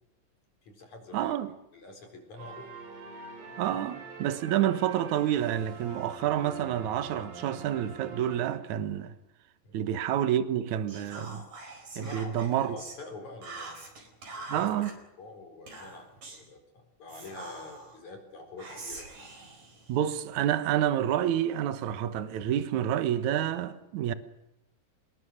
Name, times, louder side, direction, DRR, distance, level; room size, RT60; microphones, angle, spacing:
voice 1, 0.6-1.4 1.7-2.7 9.6-9.8 12.0-13.8 14.3-14.8 15.2-19.1, left 3 dB, 45° left, 5.4 m, -46 dB
voice 2, 1.1-1.5 3.6-9.1 9.7-11.5 12.0-12.8 14.5-14.9 19.9-24.1, right 11 dB, 65° right, 2.0 m, -28 dB
sound 1, 2.4-9.0, right 3 dB, 85° right, 7.1 m, -45 dB
Whispering, 10.9-13.0 13.4-14.9 15.7-16.5 17.1-18.0 18.6-20.5, right 3 dB, 40° right, 5.5 m, -44 dB
26.0 x 21.0 x 6.6 m
omnidirectional pair, 5.0 m